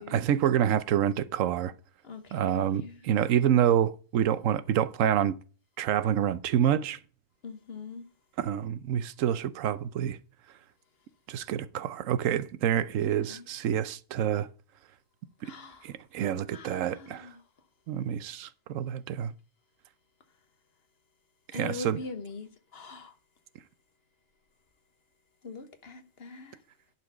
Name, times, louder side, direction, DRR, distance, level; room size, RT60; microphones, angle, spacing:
voice 1, 0.0-1.7 2.3-5.3 5.8-7.0 8.4-10.2 11.3-14.5 15.4-15.5 15.8-17.3 17.9-19.3 21.5-22.0, right 10 dB, 90° right, 1.0 m, -27 dB
voice 2, 2.0-3.0 7.4-8.1 13.0-13.5 15.4-16.0 16.5-17.4 21.5-23.1 25.4-26.6, left 4 dB, 55° left, 1.3 m, -43 dB
11.0 x 4.4 x 6.0 m
omnidirectional pair, 1.3 m